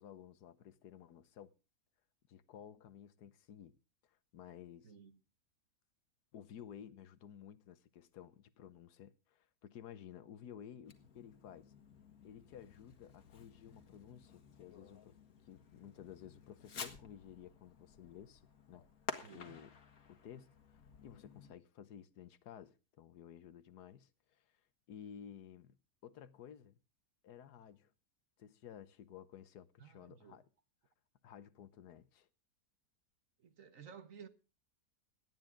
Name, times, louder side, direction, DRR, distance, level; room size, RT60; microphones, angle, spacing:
voice 1, 0.0-1.5 2.3-3.8 4.1-4.9 6.3-11.7 12.2-15.2 15.5-18.4 18.7-18.9 19.3-19.7 20.1-24.6 24.9-25.7 26.0-26.8 27.2-27.9 28.4-30.4 31.2-32.3, left 9 dB, 85° left, 1.5 m, -54 dB
voice 2, 4.8-5.2 19.2-19.6 29.8-30.4 33.4-34.3, right 7 dB, 60° right, 1.5 m, -55 dB
Fireworks, 10.8-21.5, left 6 dB, 65° left, 2.0 m, -52 dB
18.0 x 11.0 x 3.7 m
omnidirectional pair, 1.7 m